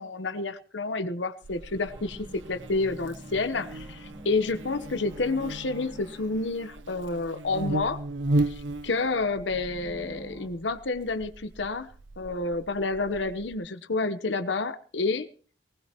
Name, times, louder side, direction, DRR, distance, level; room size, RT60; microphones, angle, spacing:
voice 1, 0.0-8.0 8.5-11.9 12.2-15.3, left 3 dB, 75° left, 12 dB, 1.0 m, -29 dB
Buzz, 1.4-13.6, right 2 dB, 85° right, 0.8 m, -36 dB
sound 1, 1.9-7.3 9.5-10.5, right 1 dB, 20° right, 2.3 m, -47 dB
20.0 x 19.0 x 3.0 m, 0.40 s
head